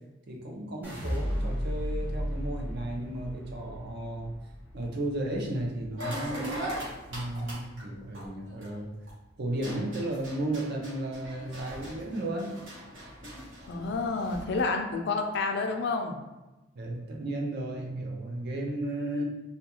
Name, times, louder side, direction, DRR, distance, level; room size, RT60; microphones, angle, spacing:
voice 1, 0.3-4.3 4.7-6.5 7.1-8.9 9.4-12.5 16.8-19.2, right 1 dB, 60° right, 0 dB, 0.5 m, -34 dB
sound 1, 0.8-7.0 7.4-8.0, equal, 10° right, 0.7 m, -35 dB
sound 2, 6.0-9.1 9.5-14.6, equal, 85° right, 0.9 m, -40 dB
voice 2, 13.7-16.2, left 3 dB, 65° left, 4 dB, 0.4 m, -29 dB
2.4 x 2.2 x 2.9 m, 1.1 s
head